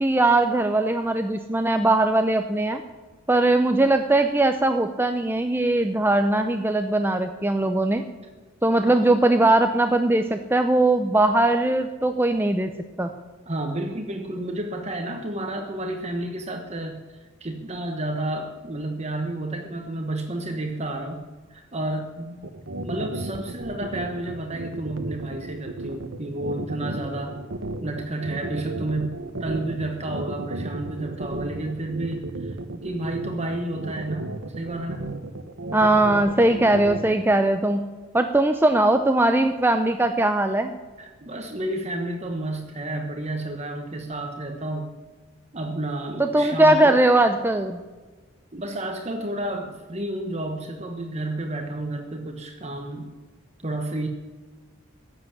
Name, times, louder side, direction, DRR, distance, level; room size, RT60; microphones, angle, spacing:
voice 1, 0.0-2.8 3.3-8.0 8.6-12.7 13.0-13.1 35.7-37.8 38.1-40.8 46.2-47.8, right 2 dB, 10° right, 7 dB, 0.6 m, -20 dB
voice 2, 13.5-21.2 21.5-22.4 22.8-27.4 27.8-34.3 34.5-35.1 41.0-44.9 45.5-47.0 48.5-53.1 53.6-54.1, right 1 dB, 35° right, 4 dB, 1.3 m, -31 dB
sound 1, 22.4-37.1, right 2 dB, 65° right, 1.1 m, -33 dB
16.0 x 7.8 x 9.7 m, 1.3 s
head